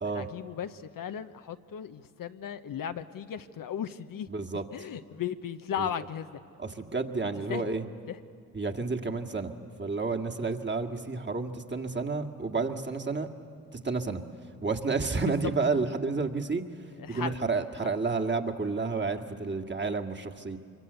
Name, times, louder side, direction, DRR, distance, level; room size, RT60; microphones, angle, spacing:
voice 1, 0.1-4.3 4.7-6.4 7.5-7.7 8.1-8.2 17.0-17.3 17.8-17.9, left 8 dB, 60° left, 9 dB, 1.0 m, -36 dB
voice 2, 4.3-4.6 5.8-5.9 6.6-7.8 8.5-13.3 13.7-14.2 14.6-16.6 17.1-20.6, right 4 dB, 30° right, 5 dB, 2.0 m, -30 dB
25.0 x 23.5 x 8.2 m, 2.3 s
supercardioid pair, 60°, 38 cm